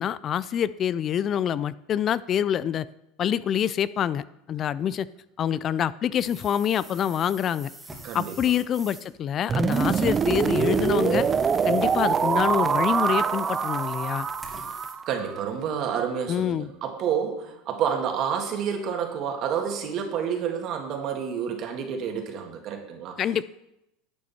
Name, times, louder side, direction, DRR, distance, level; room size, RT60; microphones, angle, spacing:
voice 1, 0.0-2.9 3.2-5.1 5.4-7.7 8.1-11.2 11.6-14.3 16.3-16.7 23.2-23.4, left 9 dB, 40° left, 18 dB, 0.4 m, -26 dB
sound 1, 6.2-9.2 9.6-14.9, right 2 dB, 10° right, 2.4 m, -45 dB
voice 2, 8.0-8.3 15.1-23.2, right 7 dB, 50° right, 3 dB, 2.0 m, -29 dB
sound 2, 9.5-15.4, right 6 dB, 25° right, 0.4 m, -24 dB
11.0 x 8.5 x 4.3 m, 0.85 s
supercardioid pair, 115°, 0 cm